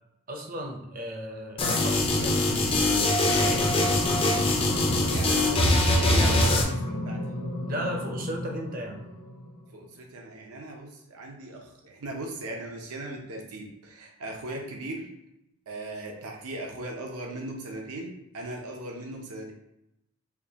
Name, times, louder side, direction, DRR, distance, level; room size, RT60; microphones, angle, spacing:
voice 1, 0.3-3.7 7.7-9.0, equal, 40° right, 2 dB, 0.6 m, -35 dB
sound 1, 1.6-6.6, left 1 dB, 25° left, 0.4 m, -23 dB
sound 2, 3.1-9.8, left 1 dB, 80° left, 0.8 m, -35 dB
voice 2, 4.8-7.2 9.7-15.1 15.7-19.5, right 1 dB, 85° right, 0 dB, 0.7 m, -38 dB
4.5 x 2.3 x 2.8 m, 0.84 s
head